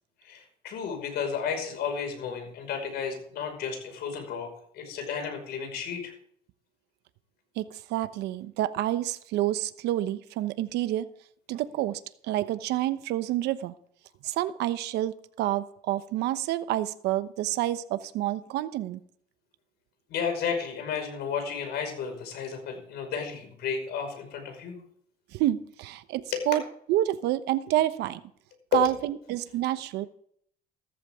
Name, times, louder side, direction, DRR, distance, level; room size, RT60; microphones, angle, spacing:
voice 1, 0.2-4.5 4.7-6.1 20.1-24.8 26.3-26.4 28.7-28.8, left 6 dB, 75° left, 5 dB, 5.3 m, -32 dB
voice 2, 7.6-11.1 11.5-13.7 14.2-19.0 25.3-26.6 26.9-28.2 28.7-30.1, right 14 dB, 85° right, 12 dB, 1.0 m, -28 dB
15.0 x 13.5 x 3.7 m, 0.63 s
cardioid pair, 110°, 17 cm